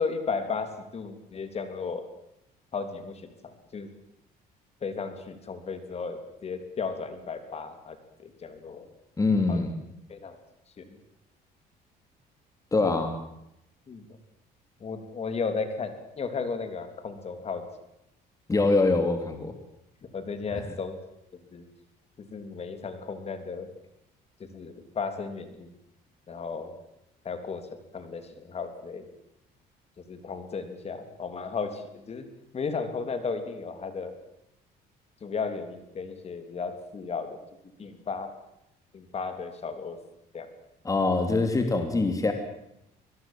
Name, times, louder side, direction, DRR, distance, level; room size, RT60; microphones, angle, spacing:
voice 1, 0.0-2.1 2.7-3.9 4.8-8.9 9.5-9.6 10.1-10.4 10.8-11.0 12.7-13.0 13.9-14.1 14.8-17.7 20.1-20.9 21.3-21.7 22.2-23.7 24.4-25.7 26.3-26.7 27.2-29.0 30.1-32.2 32.5-34.1 35.2-37.4 37.8-38.3 38.9-40.0 40.3-40.5, left 5 dB, 40° left, 8 dB, 3.3 m, -34 dB
voice 2, 9.2-9.7 12.7-13.2 18.5-19.6 20.5-20.6 40.8-42.3, left 3 dB, 20° left, 6 dB, 2.9 m, -24 dB
24.0 x 20.5 x 7.6 m, 0.82 s
cardioid pair, 110°, 17 cm